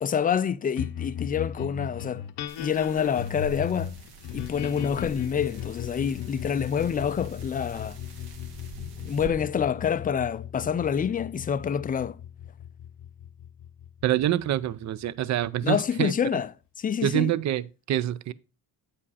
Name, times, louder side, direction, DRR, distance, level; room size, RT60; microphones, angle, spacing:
voice 1, 0.0-2.3 2.6-3.9 4.3-8.0 9.0-12.2 15.6-16.5 16.8-17.3, left 7 dB, 20° left, 0.4 m, -27 dB
sound 1, 0.8-15.4, left 10 dB, 70° left, 0.8 m, -37 dB
sound 2, 2.5-9.3, right 4 dB, 80° right, 1.8 m, -46 dB
voice 2, 14.0-16.1 17.0-18.3, right 12 dB, 45° right, 0.5 m, -26 dB
8.5 x 5.1 x 4.1 m
cardioid pair, 100°, 41 cm